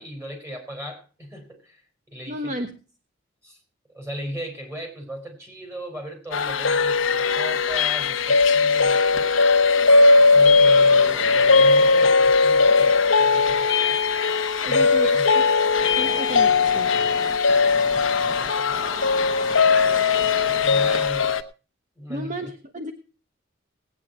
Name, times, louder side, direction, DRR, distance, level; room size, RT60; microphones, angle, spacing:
voice 1, 0.0-1.8 2.1-2.5 3.4-3.6 3.9-9.3 10.3-14.0 14.6-15.3 16.0-16.2 17.9-19.1 20.4-21.3 22.0-22.5, equal, 15° right, 3 dB, 4.8 m, -37 dB
voice 2, 2.3-2.7 14.6-15.1 16.0-16.9 22.1-22.9, equal, 40° right, 6 dB, 1.3 m, -32 dB
sound 1, 6.3-21.4, left 4 dB, 85° left, 1.0 m, -18 dB
sound 2, 7.3-21.1, left 4 dB, 20° left, 1.2 m, -37 dB
18.5 x 9.4 x 4.4 m, 0.35 s
head